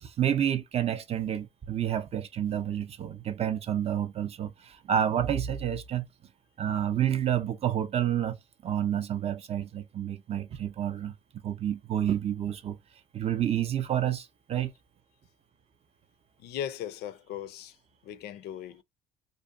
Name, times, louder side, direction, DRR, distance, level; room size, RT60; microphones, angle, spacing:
voice 1, 0.0-6.1 6.6-8.4 8.6-11.1 11.4-12.8 13.1-14.7, right 10 dB, 40° right, 0.4 m, -29 dB
voice 2, 16.4-17.7 18.0-18.8, left 10 dB, 75° left, 0.4 m, -38 dB
2.6 x 2.0 x 2.5 m
cardioid pair, 110°, 17 cm